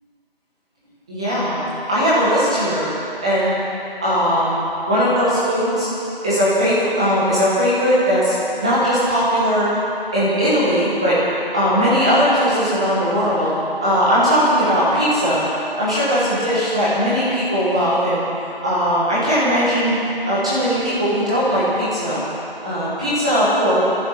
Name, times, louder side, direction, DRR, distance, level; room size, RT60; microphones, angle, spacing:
voice 1, 1.1-1.6 1.9-2.9 3.2-3.6 4.0-5.9 6.2-9.7 10.1-11.2 11.5-13.5 13.8-15.4 15.8-18.2 18.6-19.9 20.3-22.2 22.6-23.8, equal, 5° right, -10 dB, 1.1 m, -18 dB
22.5 x 14.0 x 4.2 m, 2.8 s
figure-of-eight pair, 170°, 31 cm